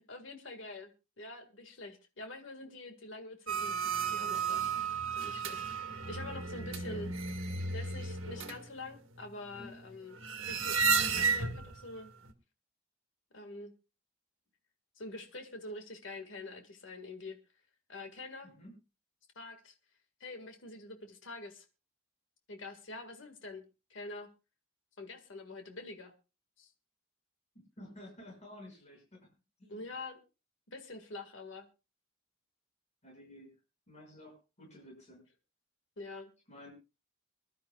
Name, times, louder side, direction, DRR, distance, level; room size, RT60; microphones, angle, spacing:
voice 1, 0.1-0.9 1.2-4.7 5.2-7.1 7.7-10.8 11.1-12.1 13.3-13.7 15.0-17.4 17.9-18.5 19.4-19.7 20.2-21.6 22.5-23.6 23.9-24.3 25.0-26.1 26.6-26.7 29.7-30.2 30.7-31.7 36.0-36.3, left 2 dB, 65° left, 5 dB, 1.8 m, -46 dB
sound 1, 3.5-11.8 12.2-12.3, right 5 dB, 90° right, 1.6 m, -33 dB
voice 2, 6.6-7.0 18.4-18.7 27.8-29.3 29.6-29.9 33.0-33.5 33.9-35.2 36.5-36.7, left 1 dB, 35° left, 0 dB, 6.0 m, -52 dB
25.0 x 12.0 x 2.3 m, 0.30 s
head